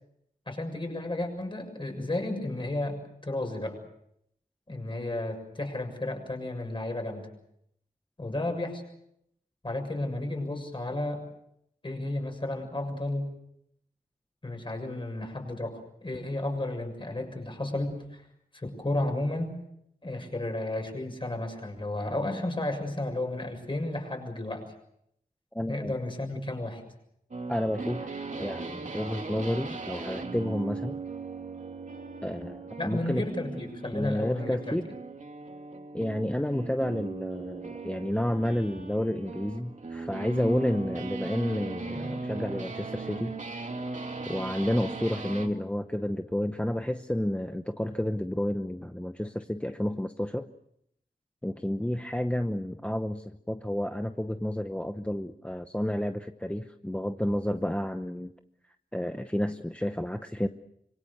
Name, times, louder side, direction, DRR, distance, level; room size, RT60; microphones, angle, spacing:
voice 1, 0.5-3.8 4.7-7.3 8.2-8.8 9.6-11.2 11.8-13.3 14.4-18.3 18.5-19.6 20.0-24.7 25.7-26.8 32.8-34.9, left 2 dB, 30° left, 4 dB, 6.9 m, -33 dB
voice 2, 25.5-25.9 27.5-28.1 28.4-31.0 32.2-33.3 33.9-34.9 35.9-43.4 44.3-50.5 51.4-58.3 58.9-60.5, left 1 dB, 10° left, 8 dB, 0.9 m, -30 dB
sound 1, 27.3-45.6, right 3 dB, 50° right, 2.6 m, -38 dB
26.0 x 24.5 x 6.9 m, 0.74 s
wide cardioid pair, 110°, 16 cm